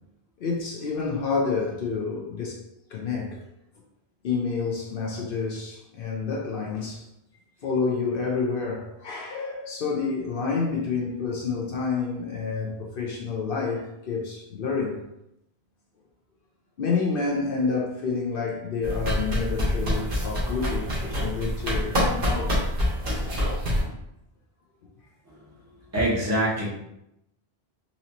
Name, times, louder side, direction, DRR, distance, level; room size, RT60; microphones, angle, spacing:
voice 1, 0.4-2.6 2.9-3.4 4.2-7.1 7.6-15.0 16.8-22.6 23.8-23.9, left 4 dB, 65° left, -1 dB, 0.8 m, -29 dB
sound 1, 18.8-23.8, equal, 60° right, 1.4 m, -26 dB
voice 2, 25.8-26.7, right 1 dB, 15° right, -8 dB, 1.1 m, -25 dB
4.1 x 2.7 x 2.8 m, 0.82 s
omnidirectional pair, 1.0 m